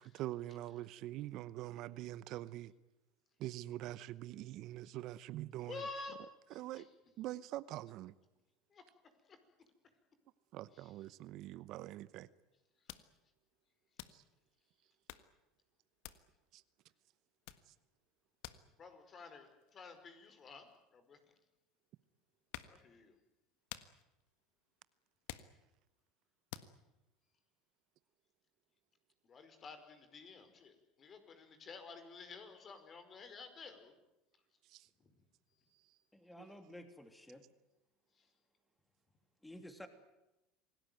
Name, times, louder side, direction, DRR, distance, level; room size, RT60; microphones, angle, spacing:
voice 1, 0.0-2.7 3.4-5.8 6.5-6.9 7.2-8.1 10.5-12.3 14.1-14.2 16.5-16.6 34.7-34.9, right 15 dB, 60° right, 0.8 m, -44 dB
voice 2, 5.7-6.2 6.7-6.9 8.7-8.8 9.3-9.4 10.7-10.9 12.8-13.0 18.8-21.2 22.7-23.2 29.2-33.9 35.0-35.1 38.2-38.3, left 4 dB, 35° left, 5.0 m, -51 dB
sound 1, 12.1-12.2 12.5-12.6 12.9-13.6 13.9-14.5 14.9-15.4 16.0-16.6 17.0-17.2 17.4-21.6 22.1-22.9 23.3-26.0 26.5-26.8, left 13 dB, 75° left, 1.5 m, -52 dB
voice 3, 36.1-37.5 39.4-39.9, left 1 dB, 5° left, 2.9 m, -52 dB
27.0 x 18.5 x 9.3 m
supercardioid pair, 105°, 0 cm